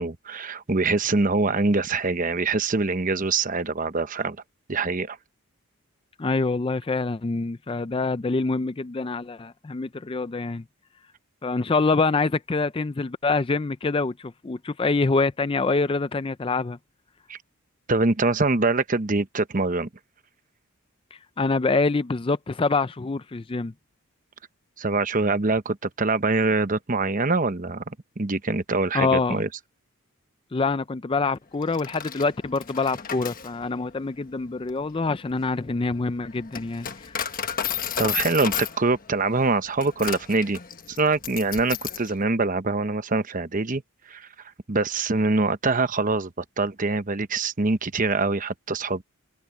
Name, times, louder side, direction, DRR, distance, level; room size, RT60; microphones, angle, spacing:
voice 1, 0.0-4.4 4.7-5.2 17.3-17.4 17.9-19.9 24.8-29.5 38.0-40.6 40.9-43.8 44.1-44.3 44.7-49.0, right 3 dB, 35° right, 0.9 m, -24 dB
voice 2, 6.2-10.6 11.4-16.8 21.4-23.7 28.9-29.4 30.5-37.2, left 3 dB, 25° left, 0.4 m, -25 dB
Coin (dropping), 31.6-42.1, left 8 dB, 40° left, 1.4 m, -33 dB
open air
head